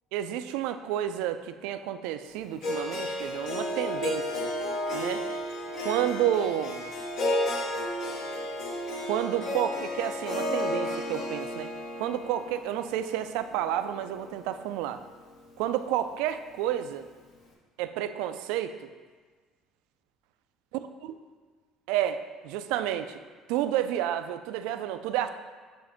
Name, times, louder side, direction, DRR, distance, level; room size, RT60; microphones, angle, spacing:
voice 1, 0.1-4.5 4.9-5.2 5.8-6.9 9.0-15.0 15.6-17.1 17.8-18.7 20.7-21.1 21.9-23.2 23.5-25.3, right 11 dB, 85° right, 10 dB, 0.3 m, -30 dB
Harp, 2.6-14.8, left 1 dB, 60° left, 1.3 m, -33 dB
7.1 x 2.6 x 5.7 m, 1.5 s
cardioid pair, 115°, 0 cm